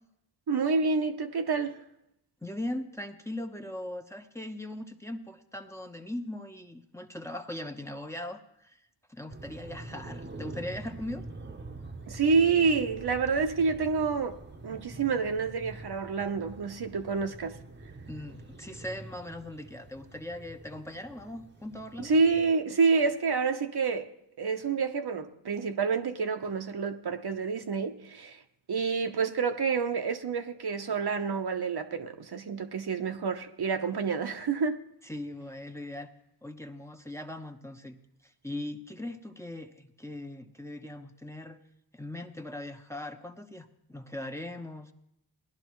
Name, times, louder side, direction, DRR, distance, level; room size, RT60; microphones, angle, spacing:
voice 1, 0.5-1.8 12.1-14.4 14.6-17.6 22.0-24.1 24.4-28.4 28.7-34.8, right 5 dB, 60° right, 0.9 m, -28 dB
voice 2, 2.4-8.8 9.1-11.3 18.1-22.1 35.0-36.1 36.4-41.6 41.9-44.9, left 1 dB, 5° left, 0.9 m, -40 dB
sound 1, 9.3-22.5, right 2 dB, 25° right, 0.9 m, -45 dB
18.0 x 11.0 x 3.1 m
cardioid pair, 55°, 44 cm